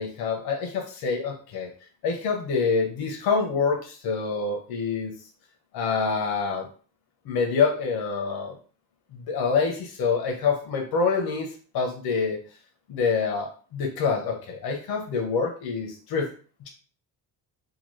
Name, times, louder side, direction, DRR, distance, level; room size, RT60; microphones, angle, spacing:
voice 1, 0.0-1.7 2.0-5.2 5.7-6.7 7.2-8.6 9.1-12.4 12.9-16.3, left 5 dB, 80° left, 2 dB, 0.8 m, -26 dB
2.9 x 2.3 x 3.1 m, 0.40 s
cardioid pair, 165°, 36 cm